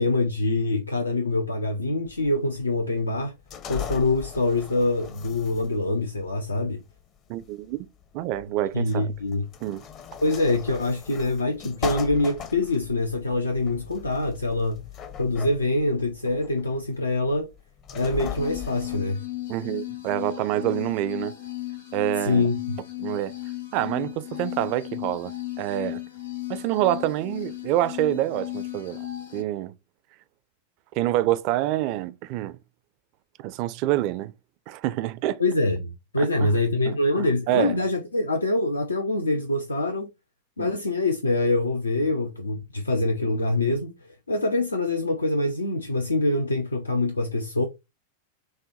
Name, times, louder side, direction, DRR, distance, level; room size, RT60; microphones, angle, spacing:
voice 1, 0.0-3.3 3.7-6.8 8.7-9.5 10.2-14.9 15.2-17.5 17.9-19.2 22.2-22.8 35.4-40.1 40.6-47.7, left 2 dB, 75° left, 0.4 m, -25 dB
sound 1, 2.1-19.0, left 8 dB, 35° left, 0.6 m, -39 dB
voice 2, 7.3-7.8 8.1-9.1 9.6-9.8 19.5-21.3 21.9-22.5 23.0-23.3 23.7-25.3 25.6-26.0 26.5-29.1 29.3-29.7 30.9-32.6 33.4-34.3 34.7-35.4 36.2-36.5 36.9-37.8 40.6-40.7, right 14 dB, 45° right, 0.4 m, -27 dB
sound 2, 18.4-29.4, left 16 dB, 60° left, 2.4 m, -35 dB
6.3 x 2.1 x 3.0 m
figure-of-eight pair, 90°, 0 cm